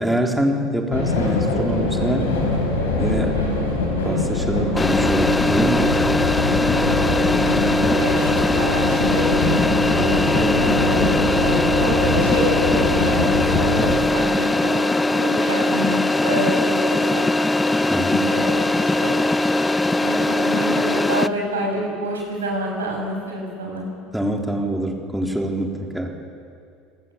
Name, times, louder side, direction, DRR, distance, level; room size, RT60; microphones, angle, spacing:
voice 1, 0.0-2.3 3.0-3.4 4.0-5.9 17.9-18.3 24.1-26.2, right 1 dB, 5° right, 1 dB, 3.8 m, -24 dB
sound 1, 0.9-14.0, left 2 dB, 75° left, 5.3 m, -23 dB
voice 2, 3.3-3.8 6.8-17.2 17.6-17.9 18.3-19.6 20.0-23.9, right 1 dB, 80° right, 0 dB, 7.0 m, -28 dB
sound 2, 4.8-21.3, left 2 dB, 15° left, 0.8 m, -20 dB
27.0 x 18.5 x 7.1 m, 2.3 s
figure-of-eight pair, 70°, 0 cm